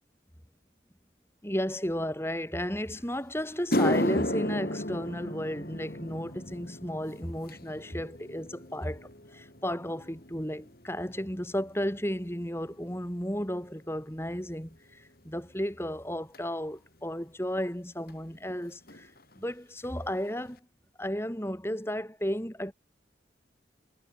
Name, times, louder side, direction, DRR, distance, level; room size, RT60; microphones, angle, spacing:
voice 1, 1.4-19.1 19.4-20.6 21.0-22.7, equal, 15° left, 6.6 m, -34 dB
sound 1, 3.0-3.1 3.5-12.0 12.3-12.7 13.5-13.6 16.3-16.4 18.1-18.2 18.4-18.6 18.9-19.4 19.8-19.9 20.5-20.6, left 1 dB, 50° left, 3.8 m, -34 dB
head